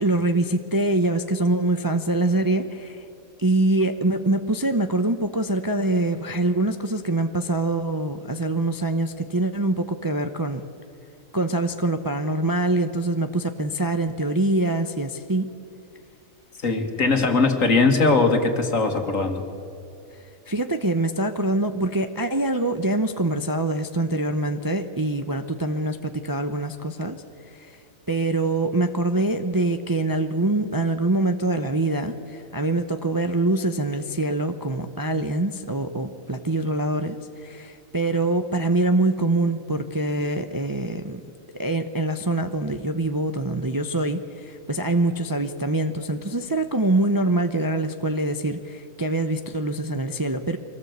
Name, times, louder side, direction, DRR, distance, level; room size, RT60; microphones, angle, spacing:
voice 1, 0.0-3.1 3.4-10.7 11.3-15.5 20.5-27.8 28.1-41.2 41.6-50.6, right 2 dB, 20° right, 7 dB, 0.6 m, -24 dB
voice 2, 16.6-19.4, left 3 dB, 65° left, 5 dB, 2.3 m, -20 dB
23.5 x 18.0 x 8.1 m, 2.5 s
omnidirectional pair, 1.5 m